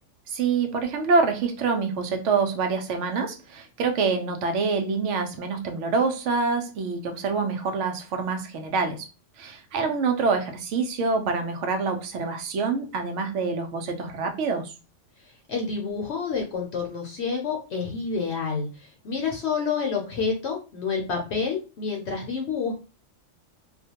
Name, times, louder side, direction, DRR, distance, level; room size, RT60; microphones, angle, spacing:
voice 1, 0.3-9.1 9.4-14.7, right 4 dB, 80° right, 0.9 m, -26 dB
voice 2, 15.2-22.7, left 5 dB, 70° left, 0.8 m, -29 dB
2.4 x 2.2 x 2.8 m
omnidirectional pair, 1.2 m